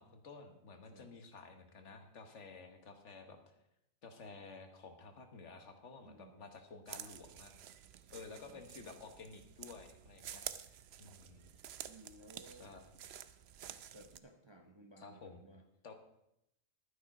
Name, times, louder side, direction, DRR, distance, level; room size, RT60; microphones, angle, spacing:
voice 1, 0.0-3.6 4.0-7.5 8.1-10.4 11.0-11.5 12.6-12.9 15.0-15.4 15.8-15.9, left 4 dB, 60° left, 6 dB, 1.5 m, -53 dB
voice 2, 6.0-6.5 8.4-8.6 11.8-12.7 13.6-15.7, right 2 dB, 25° right, 3 dB, 0.8 m, -58 dB
sound 1, 6.9-14.2, right 10 dB, 60° right, 0.7 m, -50 dB
11.5 x 9.9 x 4.9 m, 0.81 s
omnidirectional pair, 1.4 m